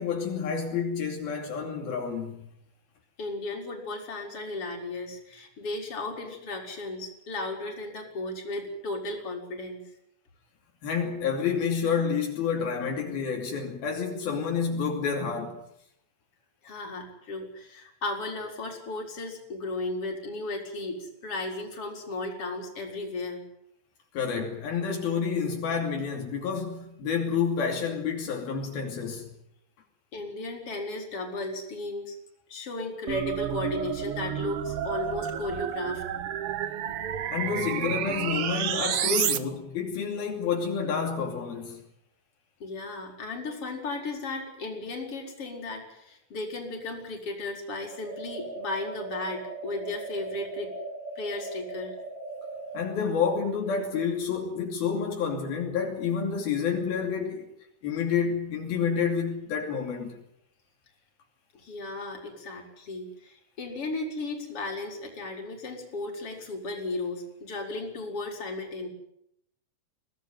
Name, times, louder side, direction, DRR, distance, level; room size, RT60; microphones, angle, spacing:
voice 1, 0.0-2.5 10.8-15.6 24.1-29.3 37.3-41.8 52.7-57.5 57.8-60.2, left 6 dB, 75° left, 4.6 m, -29 dB
voice 2, 3.2-9.8 16.6-23.4 30.1-32.2 32.5-36.0 42.6-50.7 51.2-51.9 61.5-68.9, left 2 dB, 35° left, 5.5 m, -35 dB
sound 1, 33.1-39.4, right 10 dB, 85° right, 1.2 m, -30 dB
sound 2, 47.9-52.9, right 2 dB, 60° right, 5.3 m, -39 dB
23.0 x 18.0 x 9.4 m
omnidirectional pair, 4.4 m